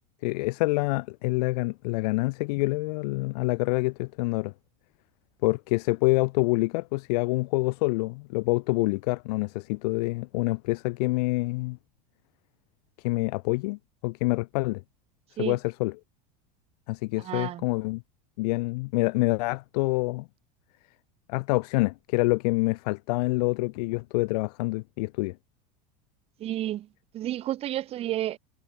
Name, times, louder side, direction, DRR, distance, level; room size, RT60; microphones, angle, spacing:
voice 1, 0.2-4.5 5.4-11.8 13.0-14.8 15.4-15.9 16.9-18.0 18.4-20.3 21.3-25.4, left 24 dB, 70° left, 0.4 m, -26 dB
voice 2, 17.2-17.6 26.4-26.9 27.1-28.4, right 13 dB, 30° right, 0.4 m, -31 dB
supercardioid pair, 115°, 21 cm